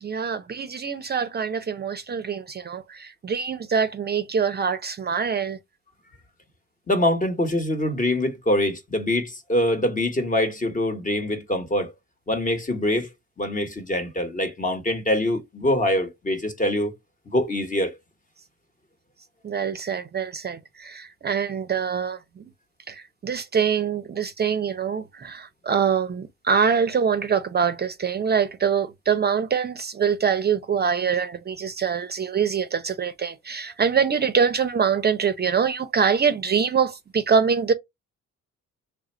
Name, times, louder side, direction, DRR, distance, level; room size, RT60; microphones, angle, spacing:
voice 1, 0.0-5.6 19.4-22.5 22.9-37.7, right 6 dB, 35° right, 0.6 m, -24 dB
voice 2, 6.9-11.9 12.3-13.1 13.4-16.9 17.3-17.9, left 1 dB, 25° left, 1.1 m, -24 dB
3.4 x 2.4 x 4.2 m
cardioid pair, 90°, 30 cm